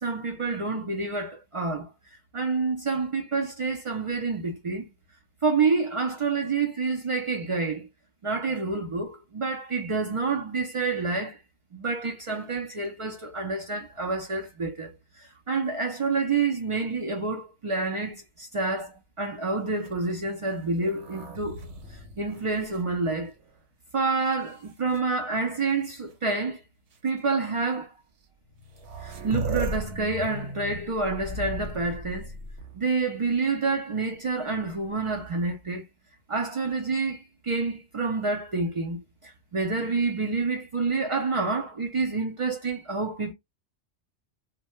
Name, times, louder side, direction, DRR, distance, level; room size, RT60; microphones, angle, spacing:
voice 1, 0.0-1.9 2.3-4.9 5.4-7.9 8.2-11.4 11.7-21.6 22.2-23.3 23.9-26.6 27.0-27.9 29.0-32.3 32.7-35.8 36.3-43.3, right 4 dB, 55° right, 0.3 m, -28 dB
sound 1, 19.7-23.6 24.3-25.0 26.1-26.2 26.9-27.1 28.2-28.3 28.5-33.0 34.9-35.6, right 1 dB, 90° right, 1.0 m, -37 dB
2.1 x 2.1 x 2.9 m
omnidirectional pair, 1.2 m